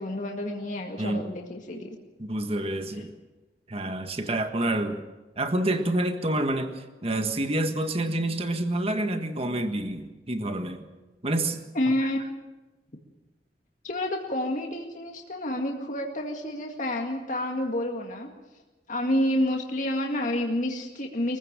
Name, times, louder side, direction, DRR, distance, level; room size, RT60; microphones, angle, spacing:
voice 1, 0.0-2.0 11.7-12.2 13.8-18.3 18.9-21.4, left 1 dB, 45° left, 1 dB, 2.0 m, -29 dB
voice 2, 2.2-3.1 3.7-5.0 5.4-10.8 11.2-11.6 12.0-12.1, right 1 dB, 35° right, 7 dB, 1.6 m, -28 dB
23.0 x 15.5 x 7.5 m, 1.2 s
head